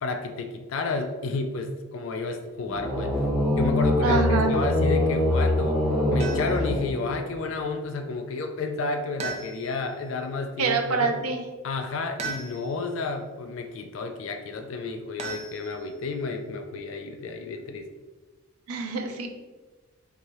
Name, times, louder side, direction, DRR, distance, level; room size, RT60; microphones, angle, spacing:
voice 1, 0.0-3.3 3.6-5.8 6.1-11.2 11.6-17.8, left 3 dB, 60° left, 6 dB, 0.3 m, -31 dB
sound 1, 2.6-7.4, left 1 dB, 5° right, 0.7 m, -24 dB
voice 2, 4.0-4.6 10.6-11.4 18.7-19.3, right 4 dB, 85° right, 4 dB, 0.5 m, -25 dB
sound 2, 6.2-6.7 9.2-9.9 12.2-12.9 15.2-16.1, right 4 dB, 30° right, 0.4 m, -37 dB
4.7 x 2.7 x 2.9 m, 1.3 s
head